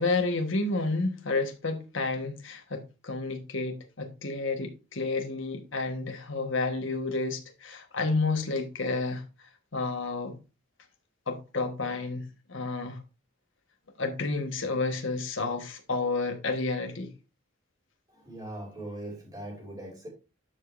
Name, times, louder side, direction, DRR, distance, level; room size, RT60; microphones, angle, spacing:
voice 1, 0.0-10.4 11.3-13.0 14.0-17.1, left 3 dB, 60° left, 1.4 m, -30 dB
voice 2, 18.1-20.1, right 1 dB, 15° right, 2.7 m, -40 dB
12.0 x 5.0 x 2.6 m
head